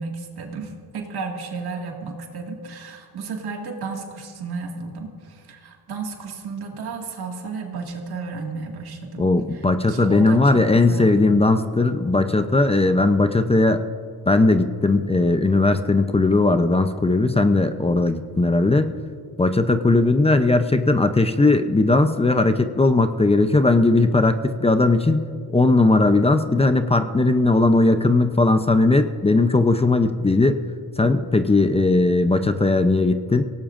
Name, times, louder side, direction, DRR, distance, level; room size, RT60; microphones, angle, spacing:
voice 1, 0.0-11.3, right 4 dB, 75° right, 1 dB, 2.1 m, -33 dB
voice 2, 9.2-13.8 14.3-18.9 19.4-30.6 31.0-33.4, left 2 dB, 15° left, 8 dB, 0.6 m, -18 dB
24.5 x 17.5 x 2.6 m, 2.2 s
cardioid pair, 110°, 39 cm